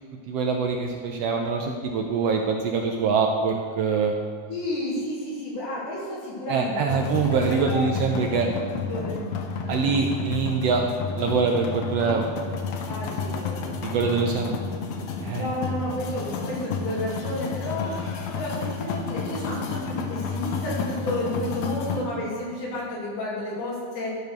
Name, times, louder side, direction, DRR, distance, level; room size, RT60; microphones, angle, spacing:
voice 1, 0.3-4.1 6.5-8.5 9.7-10.8 11.2-12.6 13.8-14.6 15.2-15.5, right 5 dB, 75° right, 2 dB, 1.5 m, -24 dB
voice 2, 4.5-7.9 8.3-8.4 8.9-9.2 12.9-14.2 15.3-24.1, left 1 dB, 90° left, -6 dB, 4.4 m, -31 dB
sound 1, 6.9-22.0, left 5 dB, 70° left, 2.0 m, -31 dB
12.5 x 5.2 x 6.4 m, 2.2 s
omnidirectional pair, 3.5 m